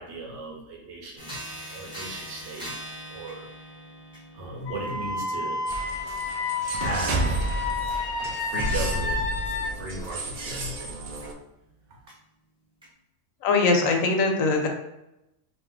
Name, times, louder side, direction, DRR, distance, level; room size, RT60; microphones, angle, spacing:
voice 1, 0.0-1.4 1.7-2.7 3.1-3.4 4.3-5.6 6.7-7.4 8.2-9.2 9.7-11.0, right 2 dB, 65° right, -1 dB, 0.9 m, -36 dB
sound 1, 1.2-10.5 11.2-11.3 12.1-12.2 12.8-12.9, right 1 dB, 5° right, 0.6 m, -44 dB
Wind instrument woodwind instrument, 4.7-9.7, left 3 dB, 60° left, 0.8 m, -30 dB
sound 2, 5.7-11.3, right 2 dB, 80° right, 0.4 m, -31 dB
voice 2, 13.4-14.7, left 3 dB, 85° left, 3 dB, 1.0 m, -21 dB
2.6 x 2.3 x 3.5 m, 0.89 s
omnidirectional pair, 1.4 m